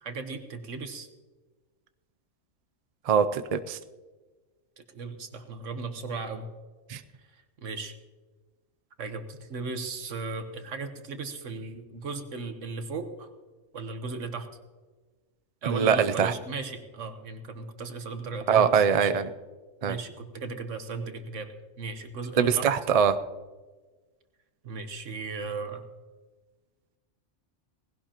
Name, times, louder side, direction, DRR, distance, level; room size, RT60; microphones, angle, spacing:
voice 1, 0.0-1.1 4.9-6.5 7.3-7.9 9.0-13.3 13.7-14.5 15.6-19.1 19.8-22.7 24.6-25.8, right 4 dB, 75° right, 8 dB, 1.5 m, -36 dB
voice 2, 3.1-3.8 6.9-7.0 15.7-16.3 18.5-19.3 19.8-20.0 22.4-23.2, right 7 dB, 50° right, 10 dB, 0.4 m, -23 dB
18.5 x 16.5 x 2.9 m, 1.3 s
omnidirectional pair, 1.3 m